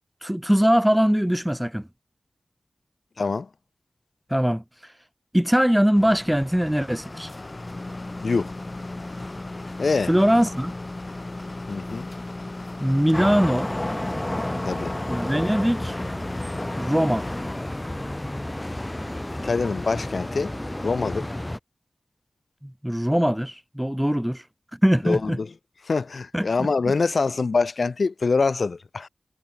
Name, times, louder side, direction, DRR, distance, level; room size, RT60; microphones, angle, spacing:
voice 1, 0.2-1.9 4.3-4.6 5.3-7.3 10.1-10.7 12.8-13.7 15.1-16.0 16.8-17.3 22.6-24.4 24.8-25.4 26.3-26.7, equal, 5° right, 0.5 m, -21 dB
voice 2, 3.2-3.5 8.2-8.5 9.8-10.1 11.7-12.1 14.6-14.9 19.4-20.5 20.8-21.3 25.0-25.5 25.8-29.1, left 4 dB, 75° left, 1.2 m, -24 dB
sound 1, 6.0-20.6, left 2 dB, 35° left, 2.8 m, -37 dB
sound 2, 13.1-21.6, left 1 dB, 20° left, 2.1 m, -31 dB
wide cardioid pair, 75°, 0 cm